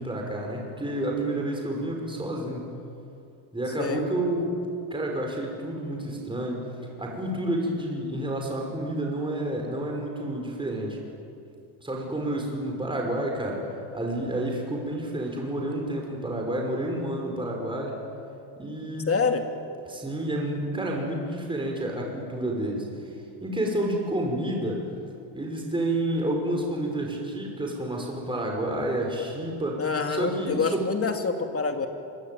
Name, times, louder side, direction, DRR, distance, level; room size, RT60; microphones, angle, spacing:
voice 1, 0.0-2.7 3.5-4.5 4.9-6.7 7.0-11.0 11.8-13.6 13.9-18.0 18.6-19.1 19.9-22.9 23.4-24.8 25.3-30.8, right 1 dB, 10° right, 0 dB, 5.5 m, -29 dB
voice 2, 19.1-19.4 29.8-31.9, left 5 dB, 30° left, 5 dB, 2.8 m, -26 dB
26.0 x 23.0 x 9.3 m, 2.6 s
cardioid pair, 120°, 47 cm